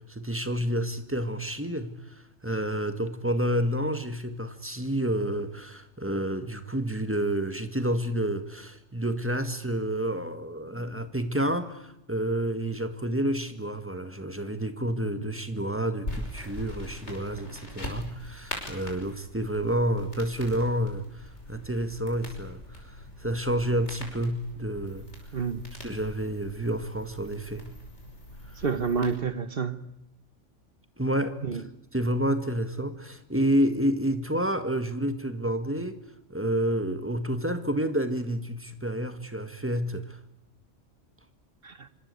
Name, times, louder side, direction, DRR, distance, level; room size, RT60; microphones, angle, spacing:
voice 1, 0.0-25.1 25.8-27.7 31.0-31.6 31.9-36.0 36.3-40.2, right 1 dB, 10° right, 9 dB, 1.8 m, -29 dB
sound 1, 16.0-29.2, left 1 dB, 65° left, 6.1 m, -42 dB
voice 2, 25.3-25.6 28.6-29.8 31.4-31.6 41.6-41.9, right 5 dB, 50° right, 13 dB, 1.4 m, -29 dB
25.5 x 24.5 x 8.3 m, 0.85 s
omnidirectional pair, 1.3 m